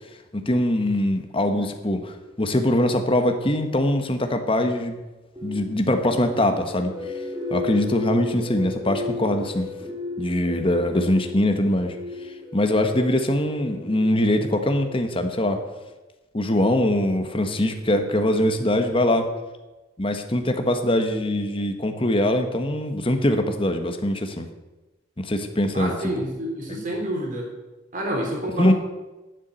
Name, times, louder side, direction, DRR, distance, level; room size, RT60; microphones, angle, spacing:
voice 1, 0.3-4.9 5.4-7.0 7.5-9.7 10.2-11.9 12.5-15.6 16.3-19.3 20.0-24.5 25.2-25.9 26.8-26.9 28.6-28.7, left 1 dB, 30° left, 6 dB, 1.2 m, -22 dB
sound 1, 5.3-15.4, left 3 dB, 20° right, 4.3 m, -35 dB
voice 2, 25.7-27.5 27.9-28.7, right 1 dB, 45° right, 0 dB, 3.6 m, -28 dB
11.5 x 7.3 x 8.1 m, 1.1 s
head